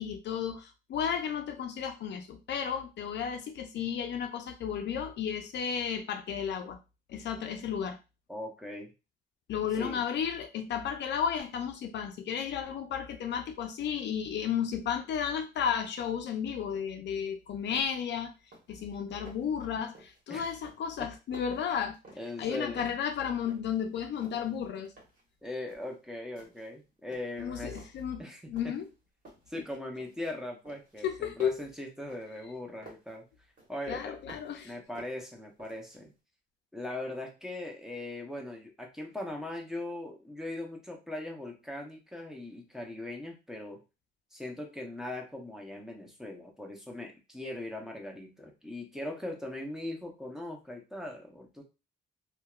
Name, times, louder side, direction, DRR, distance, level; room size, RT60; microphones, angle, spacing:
voice 1, 0.0-6.8 7.1-8.0 9.5-18.3 18.7-22.0 22.4-24.9 27.4-28.9 31.0-31.6 33.9-34.7, left 8 dB, 60° left, 0.4 m, -33 dB
voice 2, 8.3-8.9 9.8-10.0 20.3-20.5 21.0-21.1 21.5-21.7 22.2-23.0 25.4-27.9 28.2-28.7 29.5-33.3 33.7-34.2 34.6-36.1 36.7-43.8 44.3-51.6, left 1 dB, ahead, 0.7 m, -40 dB
sound 1, 17.3-17.4 17.7-18.1 18.4-18.8 19.1-19.6 19.9-20.3 20.6-22.5 22.8-23.8 24.1-25.3 25.7-26.0 26.4-26.8 27.1-28.1 28.6-28.9 29.2-30.3 30.7-33.2 33.6-34.6 34.9-36.0, right 2 dB, 45° right, 1.3 m, -54 dB
2.7 x 2.2 x 2.3 m
cardioid pair, 90°, 20 cm